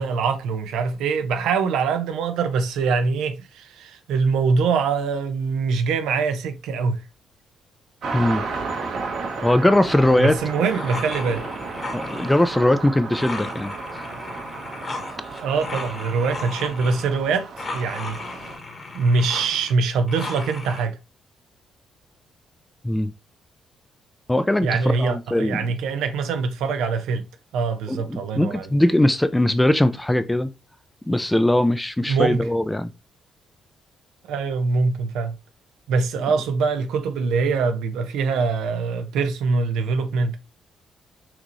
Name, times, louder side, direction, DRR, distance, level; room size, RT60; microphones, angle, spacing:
voice 1, 0.0-7.0 10.2-11.5 15.4-18.2 18.9-21.0 24.6-27.3 27.5-28.7 32.1-32.4 34.3-35.4 35.9-40.4, right 4 dB, 85° right, 0.8 m, -23 dB
sound 1, 8.0-18.6, right 4 dB, 65° right, 1.3 m, -33 dB
voice 2, 8.1-8.4 9.4-10.3 11.9-13.7 22.8-23.1 24.3-24.7 25.0-25.7 27.9-30.5 31.1-32.9, left 1 dB, 10° left, 0.5 m, -20 dB
sound 2, 10.7-12.4 13.1-17.1 17.6-20.8, left 3 dB, 35° left, 1.3 m, -35 dB
6.0 x 2.6 x 3.1 m
cardioid pair, 90°, 0 cm